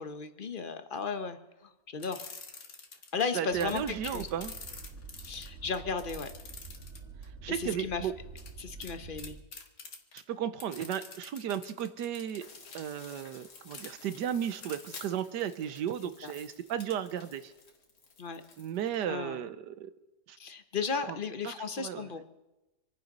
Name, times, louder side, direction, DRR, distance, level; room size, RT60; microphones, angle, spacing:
voice 1, 0.0-2.2 3.1-4.3 5.2-6.3 7.5-8.1 8.6-9.4 16.2-16.3 18.2-18.4 19.1-19.4 20.4-22.2, left 5 dB, 35° left, 8 dB, 1.0 m, -35 dB
sound 1, 2.0-3.2 3.6-7.2 8.4-8.5 8.8-8.9 9.2-10.2 10.6-12.8 13.7-13.9 14.6-14.8 15.1-15.2, left 4 dB, 60° left, 2.0 m, -46 dB
voice 2, 3.3-4.5 7.4-8.1 10.1-12.5 12.7-17.5 18.6-19.9 20.3-20.4 21.1-21.2 21.4-22.1, right 9 dB, 85° right, 12 dB, 1.5 m, -35 dB
sound 2, 3.5-9.4, right 4 dB, 55° right, 2.2 m, -47 dB
sound 3, 12.4-19.0, left 4 dB, 75° left, 2.4 m, -52 dB
26.5 x 9.2 x 5.4 m, 1.0 s
omnidirectional pair, 1.8 m